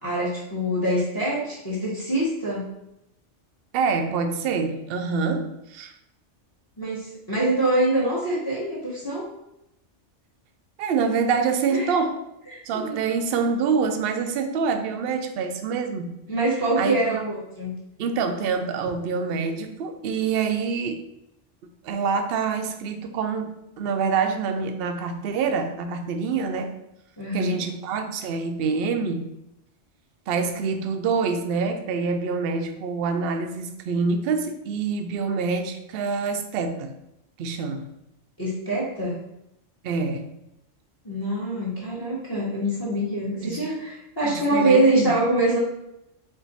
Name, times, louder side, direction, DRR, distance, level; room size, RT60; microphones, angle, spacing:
voice 1, 0.0-2.6 6.8-9.2 11.7-11.9 12.5-13.0 16.3-17.7 27.2-27.6 38.4-39.2 41.0-45.6, right 1 dB, 20° left, -5 dB, 1.0 m, -24 dB
voice 2, 3.7-5.9 10.8-12.3 12.7-16.1 16.8-17.2 18.0-21.0 21.8-26.7 27.3-29.3 30.3-37.0 37.4-37.9 39.8-40.3 43.4-43.6 44.2-45.1, right 5 dB, 65° right, 7 dB, 0.7 m, -26 dB
4.4 x 2.6 x 4.0 m, 0.86 s
omnidirectional pair, 1.2 m